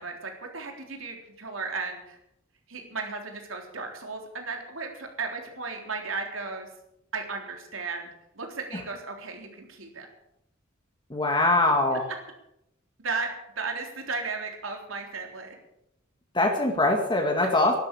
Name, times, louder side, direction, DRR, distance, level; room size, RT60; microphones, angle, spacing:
voice 1, 0.0-2.2 2.7-6.7 7.1-8.1 8.3-10.1 11.9-12.0 13.0-13.3 13.6-15.6, right 4 dB, 90° right, 3 dB, 3.7 m, -35 dB
voice 2, 11.1-12.0 16.3-17.7, left 2 dB, 25° left, 3 dB, 1.9 m, -22 dB
12.0 x 12.0 x 8.4 m, 0.82 s
head